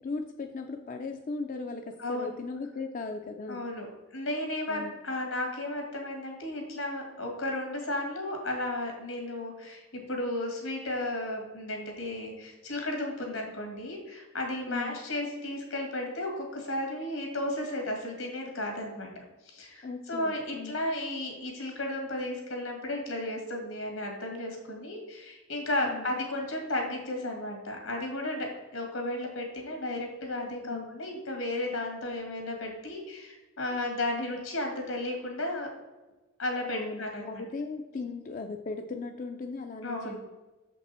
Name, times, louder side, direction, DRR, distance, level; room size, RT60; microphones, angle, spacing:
voice 1, 0.0-3.6 4.7-4.9 13.2-13.4 14.7-15.0 19.8-20.7 25.8-26.1 30.6-31.0 36.7-40.2, left 3 dB, 40° left, 4 dB, 0.4 m, -38 dB
voice 2, 2.0-2.4 3.5-3.9 4.1-19.1 19.4-35.7 36.4-37.4 39.8-40.2, left 1 dB, 80° left, 2 dB, 2.0 m, -34 dB
6.7 x 5.3 x 4.2 m, 1.1 s
head